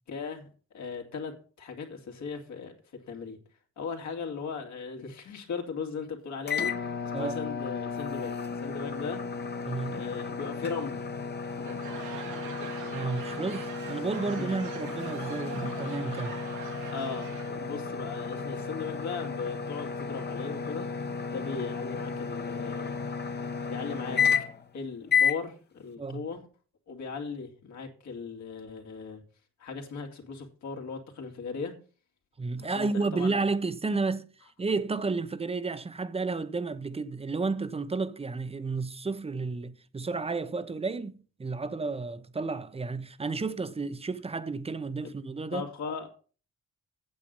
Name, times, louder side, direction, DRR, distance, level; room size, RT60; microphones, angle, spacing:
voice 1, 0.1-0.5 0.7-3.4 3.8-9.2 9.9-11.0 11.6-13.1 14.2-14.6 16.9-20.9 21.3-23.0 23.7-24.2 24.7-26.5 26.9-29.2 29.6-31.7 32.6-33.5 45.5-46.1, left 5 dB, 70° left, 2.5 m, -38 dB
sound 1, 6.5-24.7 25.1-25.4, left 6 dB, 35° left, 1.1 m, -33 dB
voice 2, 7.1-7.5 9.7-10.0 12.9-16.3 26.0-26.3 32.4-34.3 34.6-45.7, right 4 dB, 20° right, 0.8 m, -32 dB
Laughter / Crowd, 11.5-17.7, right 7 dB, 75° right, 1.8 m, -44 dB
8.9 x 7.7 x 5.4 m
cardioid pair, 90°, 30 cm